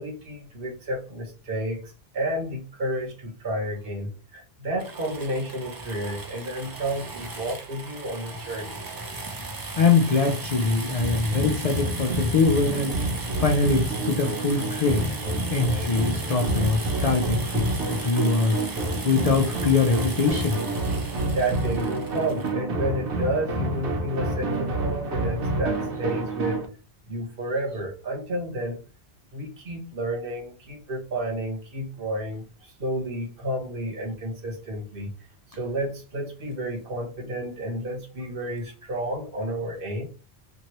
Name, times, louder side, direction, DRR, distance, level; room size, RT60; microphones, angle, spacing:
voice 1, 0.0-8.8 21.3-26.6 27.1-28.8 29.3-35.1 35.5-40.1, right 1 dB, 55° right, 1 dB, 1.1 m, -31 dB
sound 1, 4.8-22.5, right 2 dB, 30° right, 0.4 m, -36 dB
voice 2, 9.8-12.9 13.3-15.1 15.5-18.6 19.0-20.6, left 4 dB, 55° left, 2 dB, 0.4 m, -23 dB
sound 2, 11.0-26.7, right 2 dB, 85° right, 1.1 m, -29 dB
2.9 x 2.6 x 2.9 m, 0.34 s
omnidirectional pair, 1.1 m